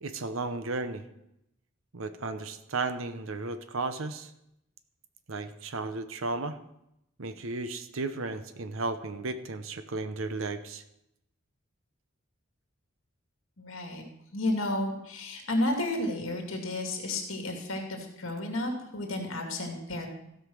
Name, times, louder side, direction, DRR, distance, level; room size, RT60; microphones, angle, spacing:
voice 1, 0.0-1.0 1.9-4.3 5.3-6.6 7.2-10.8, right 3 dB, 70° right, 11 dB, 0.9 m, -34 dB
voice 2, 13.6-14.0 14.3-20.1, left 1 dB, 65° left, 2 dB, 2.5 m, -32 dB
15.0 x 5.6 x 6.3 m, 0.83 s
head